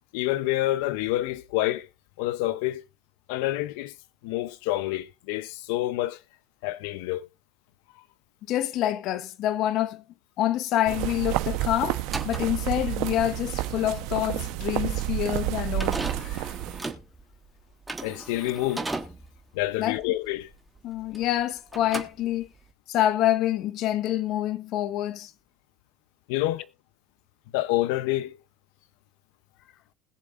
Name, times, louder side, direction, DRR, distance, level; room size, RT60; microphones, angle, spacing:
voice 1, 0.1-1.9 2.2-2.8 3.3-3.9 4.2-6.2 6.6-7.3 18.0-18.9 19.5-20.5 26.3-26.7 27.5-28.3, left 16 dB, 90° left, 0.6 m, -27 dB
voice 2, 8.5-10.0 10.4-12.0 12.2-16.5 19.8-20.0 20.8-22.5 22.9-25.3, left 13 dB, 50° left, 0.9 m, -27 dB
sound 1, 10.9-16.9, right 15 dB, 65° right, 0.9 m, -30 dB
sound 2, 12.1-21.4 21.7-22.7, right 2 dB, 5° right, 1.2 m, -37 dB
20.5 x 7.3 x 2.5 m
cardioid pair, 165°, 0 cm